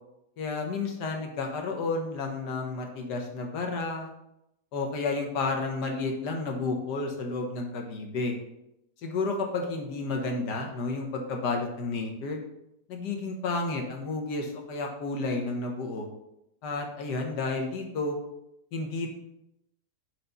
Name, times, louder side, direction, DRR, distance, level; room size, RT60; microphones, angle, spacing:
voice 1, 0.4-4.1 4.7-8.3 9.0-12.4 12.9-16.1 16.6-18.2 18.7-19.1, left 3 dB, 80° left, 2 dB, 1.7 m, -31 dB
4.9 x 4.4 x 5.4 m, 0.83 s
omnidirectional pair, 1.8 m